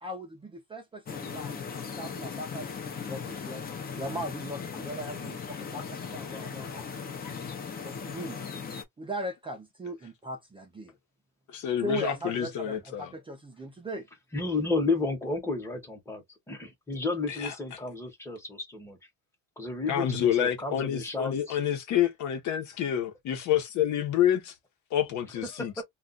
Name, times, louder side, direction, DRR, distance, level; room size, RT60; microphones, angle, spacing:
voice 1, 0.0-1.6 1.9-6.9 7.8-8.4 9.0-10.9 11.8-14.1, right 1 dB, 15° right, 0.5 m, -38 dB
sound 1, 1.1-8.8, left 6 dB, 25° left, 0.6 m, -38 dB
voice 2, 11.5-13.1 17.3-17.5 19.9-24.5 24.9-25.7, left 10 dB, 55° left, 0.9 m, -28 dB
voice 3, 14.3-19.0 19.6-21.6 25.4-25.8, left 3 dB, 10° left, 0.9 m, -32 dB
2.4 x 2.3 x 3.8 m
cardioid pair, 165°, 34 cm